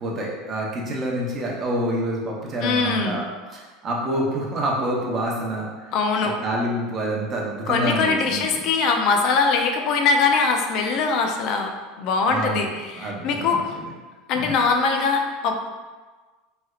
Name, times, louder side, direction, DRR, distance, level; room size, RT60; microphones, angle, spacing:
voice 1, 0.0-3.2 3.5-5.7 6.2-8.4 12.3-13.7 14.3-14.5, right 1 dB, 35° right, -2 dB, 0.7 m, -27 dB
voice 2, 2.6-3.2 5.9-6.4 7.7-11.7 12.0-13.6 14.3-15.6, left 4 dB, 60° left, 3 dB, 0.3 m, -22 dB
3.2 x 2.7 x 2.3 m, 1.3 s
supercardioid pair, 110°, 0 cm